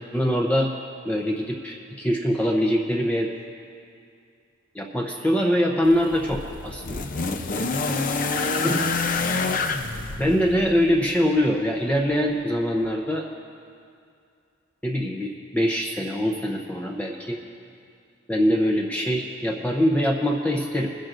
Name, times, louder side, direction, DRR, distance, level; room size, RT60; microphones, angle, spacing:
voice 1, 0.1-0.7 1.0-3.3 4.7-7.1 8.6-8.8 10.2-13.3 14.8-17.4 18.3-20.9, equal, 10° left, -1 dB, 0.7 m, -23 dB
sound 1, 5.8-11.1 12.1-12.2, left 3 dB, 45° left, 0.6 m, -27 dB
24.5 x 10.5 x 2.6 m, 2.4 s
head